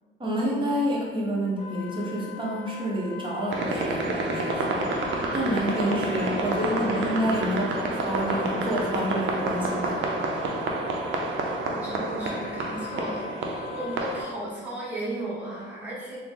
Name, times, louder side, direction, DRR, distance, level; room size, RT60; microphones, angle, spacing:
voice 1, 0.2-4.9 5.3-10.0, equal, 25° right, -4 dB, 1.0 m, -28 dB
Wind instrument woodwind instrument, 1.6-14.2, left 5 dB, 25° left, 1.0 m, -40 dB
sound 1, 3.5-14.2, right 2 dB, 75° right, 0.5 m, -29 dB
voice 2, 11.7-16.2, right 1 dB, 5° right, -9 dB, 1.4 m, -35 dB
3.6 x 2.1 x 3.6 m, 1.5 s
cardioid pair, 90°, 20 cm